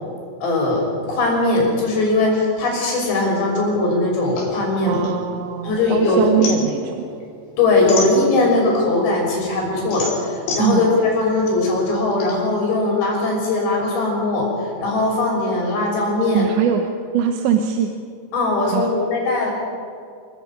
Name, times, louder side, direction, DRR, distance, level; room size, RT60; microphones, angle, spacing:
voice 1, 0.4-5.0 5.6-6.2 7.6-14.5 14.8-16.5 18.3-19.5, left 2 dB, 70° left, -1 dB, 8.3 m, -20 dB
sound 1, 4.4-5.9 6.2-8.7 9.2-12.3, left 3 dB, 90° left, 6.4 m, -30 dB
voice 2, 4.9-7.0 10.6-10.9 16.3-17.9 18.7-18.9, right 8 dB, 85° right, 5 dB, 3.4 m, -21 dB
28.5 x 14.5 x 8.9 m, 2.2 s
omnidirectional pair, 5.1 m